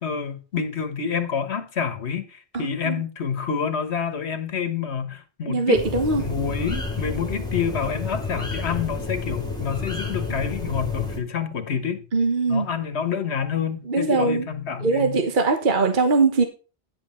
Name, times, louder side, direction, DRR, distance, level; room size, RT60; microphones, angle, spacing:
voice 1, 0.0-5.8 6.2-12.0 12.5-15.2, left 6 dB, 80° left, 1.5 m, -28 dB
voice 2, 2.5-3.0 5.5-6.2 12.1-12.7 13.9-14.5 14.8-16.4, right 3 dB, 50° right, 1.4 m, -21 dB
sound 1, 5.7-11.2, left 4 dB, 5° left, 2.6 m, -30 dB
9.9 x 7.6 x 4.4 m
omnidirectional pair, 1.1 m